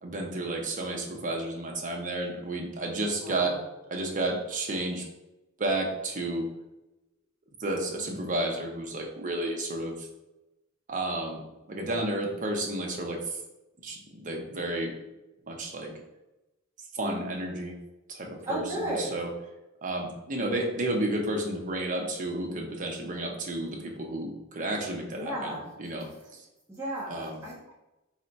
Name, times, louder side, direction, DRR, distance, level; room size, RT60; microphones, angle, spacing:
voice 1, 0.0-3.6 3.9-5.0 5.6-6.5 7.6-10.1 10.9-11.4 11.7-13.4 13.8-14.9 15.5-15.9 16.9-17.7 18.1-19.3 19.8-26.4 27.1-27.4, right 2 dB, 40° right, 1 dB, 0.6 m, -32 dB
voice 2, 3.2-3.6 17.0-17.2 18.5-19.2 25.1-25.7 26.7-27.7, right 1 dB, 15° right, -7 dB, 1.1 m, -34 dB
3.3 x 2.1 x 4.0 m, 0.98 s
head